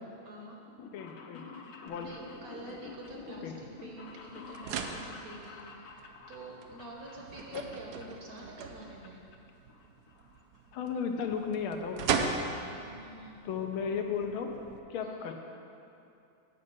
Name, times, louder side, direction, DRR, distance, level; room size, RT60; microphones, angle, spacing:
voice 1, 0.2-0.6 2.0-5.9 6.3-9.2 12.8-13.4 15.0-15.3, right 2 dB, 55° right, -1 dB, 1.2 m, -47 dB
sound 1, 0.6-8.4 8.7-9.4 9.7-10.8 11.0-11.1 12.0-12.1 12.3-12.4 12.7-12.8 13.1-13.3 13.7-13.8 14.0-14.1, left 5 dB, 65° left, 1.0 m, -49 dB
voice 2, 0.9-1.5 1.8-2.1 3.4-3.5 7.5-7.6 10.7-12.4 13.4-14.5 14.9-15.3, left 6 dB, 85° left, 4 dB, 1.6 m, -34 dB
sound 2, 1.9-14.8, right 5 dB, 75° right, 0.9 m, -40 dB
7.8 x 5.3 x 7.6 m, 2.6 s
omnidirectional pair, 2.3 m